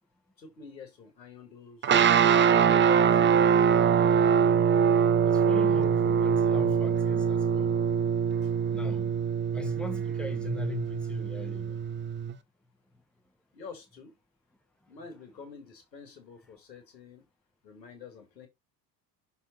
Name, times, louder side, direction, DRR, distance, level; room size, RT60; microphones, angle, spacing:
voice 1, 0.4-1.9 2.3-3.7 8.4-8.5 13.5-14.1 14.9-17.2 17.6-18.5, left 5 dB, 90° left, 2.1 m, -48 dB
sound 1, 1.8-12.3, right 7 dB, 25° right, 0.6 m, -23 dB
voice 2, 5.3-7.8 8.7-9.1 9.5-11.8, left 2 dB, ahead, 1.4 m, -39 dB
6.3 x 4.0 x 3.8 m
hypercardioid pair, 75°, 49 cm